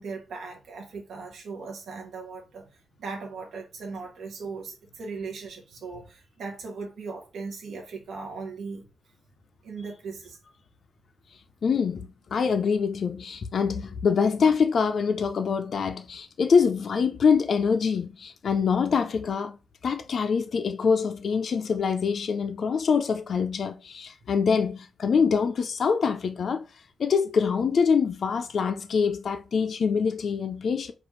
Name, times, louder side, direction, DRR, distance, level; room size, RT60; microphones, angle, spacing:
voice 1, 0.0-8.9 9.6-10.4, right 4 dB, 75° right, 0.8 m, -38 dB
voice 2, 11.6-19.6 19.8-26.6 27.0-30.9, left 6 dB, 50° left, 0.4 m, -24 dB
4.9 x 2.4 x 3.1 m
wide cardioid pair, 140°, 0 cm